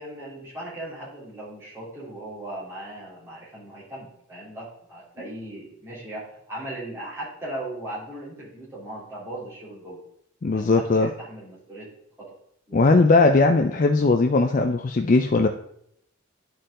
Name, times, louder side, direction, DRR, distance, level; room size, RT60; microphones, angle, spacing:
voice 1, 0.0-10.0 10.5-11.9 12.2-12.3 12.7-12.9, right 1 dB, 10° right, -8 dB, 3.2 m, -38 dB
voice 2, 10.4-11.1 12.7-15.5, left 3 dB, 40° left, 5 dB, 0.4 m, -19 dB
10.5 x 4.6 x 3.7 m, 0.71 s
head